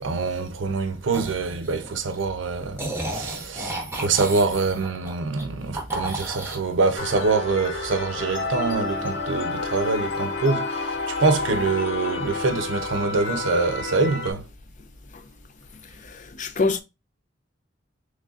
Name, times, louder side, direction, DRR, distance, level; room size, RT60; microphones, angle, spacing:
voice 1, 0.0-14.5, right 4 dB, 75° right, 0.6 m, -25 dB
sound 1, 1.1-2.2 2.8-5.4 5.7-6.6, right 1 dB, 15° right, 0.8 m, -33 dB
sound 2, 7.0-14.3, left 3 dB, 65° left, 1.0 m, -30 dB
voice 2, 16.0-16.8, left 3 dB, 40° left, 0.5 m, -25 dB
3.9 x 3.1 x 2.4 m
head